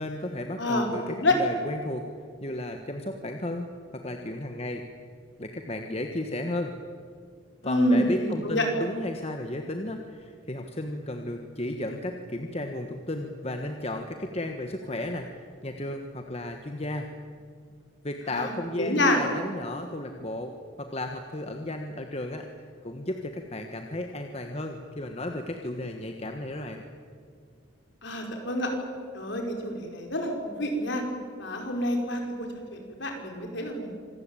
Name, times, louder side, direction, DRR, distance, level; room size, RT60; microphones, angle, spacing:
voice 1, 0.0-2.0 2.4-4.8 5.4-6.7 7.6-17.1 18.0-20.5 20.8-22.4 22.8-26.8, left 1 dB, 30° left, 4 dB, 1.4 m, -34 dB
voice 2, 0.6-1.3 7.6-8.7 18.3-18.5 18.8-19.2 28.0-28.7 29.1-31.0 31.4-33.9, left 1 dB, 55° left, 2 dB, 5.1 m, -27 dB
26.5 x 19.5 x 9.1 m, 2.2 s
head